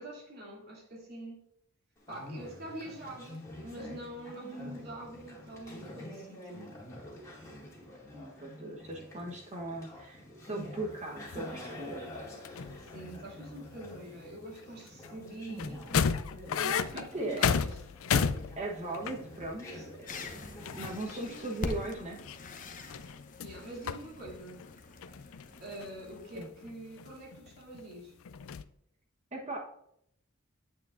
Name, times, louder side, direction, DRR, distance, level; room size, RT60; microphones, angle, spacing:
voice 1, 0.0-1.4 2.1-6.7 12.8-16.1 16.6-17.8 23.4-24.7 25.6-28.1, right 1 dB, 50° right, -3 dB, 2.7 m, -45 dB
Conversation, 2.0-21.7, left 1 dB, 15° left, 2.4 m, -47 dB
voice 2, 8.1-12.1 16.9-17.4 18.6-20.3 20.7-22.2 26.3-26.5 29.3-29.6, right 2 dB, 35° right, 0 dB, 1.1 m, -38 dB
sound 1, 11.0-11.8 12.3-13.4 13.7-15.1 15.6-19.6 20.0-20.1 20.3-21.4 21.7-23.6 23.9-24.7 25.0-25.9 26.4-27.8 28.3-28.6, left 6 dB, 70° left, 0.4 m, -34 dB
sound 2, 20.1-26.4, left 2 dB, 40° left, 0.9 m, -44 dB
9.4 x 8.5 x 2.5 m, 0.72 s
head